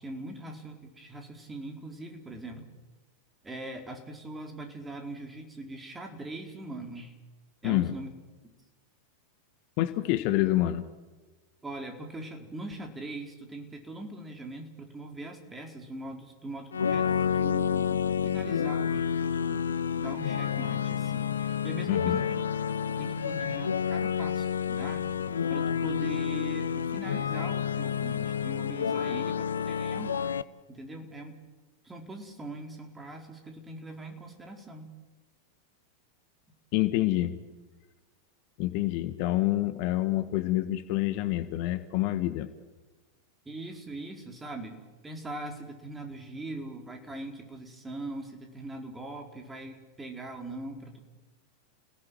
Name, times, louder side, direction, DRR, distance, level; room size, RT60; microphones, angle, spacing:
voice 1, 0.0-2.6 3.4-7.1 7.6-8.1 11.6-17.9 18.2-19.6 20.0-22.3 22.9-25.0 25.5-30.2 30.7-31.3 31.8-34.9 43.4-44.8 45.0-51.0, right 2 dB, 10° right, 3 dB, 4.6 m, -41 dB
voice 2, 7.6-7.9 9.8-10.8 21.9-22.2 36.7-37.4 38.6-42.5, left 16 dB, 45° left, 10 dB, 1.5 m, -27 dB
sound 1, 16.7-30.4, left 7 dB, 70° left, 0.8 m, -29 dB
30.0 x 17.5 x 9.3 m, 1.2 s
figure-of-eight pair, 90°, 0 cm